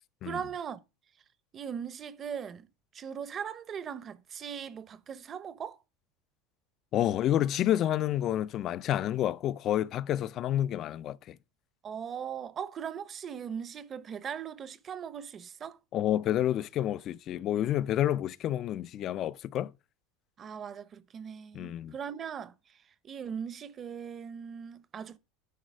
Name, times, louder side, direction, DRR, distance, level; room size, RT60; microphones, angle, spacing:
voice 1, 0.2-0.8 1.5-2.7 2.9-5.8 11.8-15.8 20.4-22.8 23.0-25.2, right 7 dB, 30° right, 0.8 m, -39 dB
voice 2, 6.9-11.4 15.9-19.7 21.5-21.9, left 12 dB, 40° left, 0.5 m, -29 dB
10.5 x 4.0 x 6.4 m
supercardioid pair, 135°, 0 cm